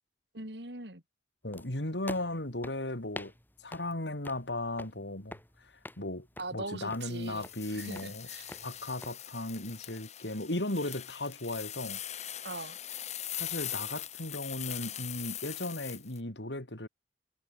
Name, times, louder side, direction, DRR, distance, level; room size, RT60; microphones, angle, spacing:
voice 1, 0.3-1.0 6.4-8.6 12.4-12.8, right 2 dB, 70° right, 7.1 m, -41 dB
voice 2, 1.4-3.3 3.6-6.3 6.5-8.3 8.6-12.0 13.3-16.9, left 1 dB, 80° left, 3.8 m, -36 dB
sound 1, 1.5-9.1, left 1 dB, 10° left, 6.4 m, -48 dB
sound 2, 7.0-16.2, left 11 dB, 40° left, 1.9 m, -41 dB
head